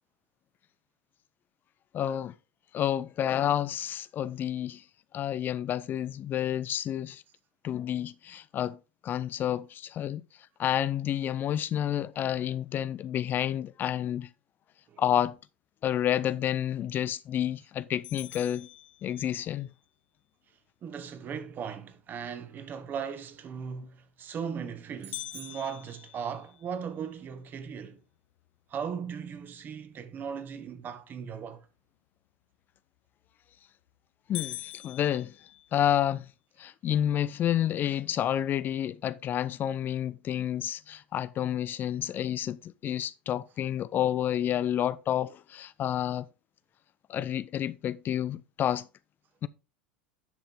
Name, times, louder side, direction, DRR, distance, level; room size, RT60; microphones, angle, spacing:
voice 1, 1.9-2.3 2.7-4.8 5.1-7.2 7.6-8.8 9.0-10.2 10.6-14.3 15.0-15.4 15.8-18.7 19.0-19.7 34.3-35.3 35.7-36.3 36.6-46.3 47.1-48.9 49.4-49.5, left 10 dB, 35° left, 0.4 m, -29 dB
sound 1, 18.0-19.6 25.1-27.3 27.8-27.9 28.4-28.5 29.1-29.5 33.1-33.5 33.9-34.0 34.3-36.1, left 16 dB, 65° left, 0.7 m, -43 dB
voice 2, 20.8-28.0 28.7-31.7, right 7 dB, 35° right, 1.4 m, -38 dB
sound 2, 25.0-26.3, right 10 dB, 60° right, 3.5 m, -52 dB
10.0 x 5.7 x 3.7 m
hypercardioid pair, 80°, 6 cm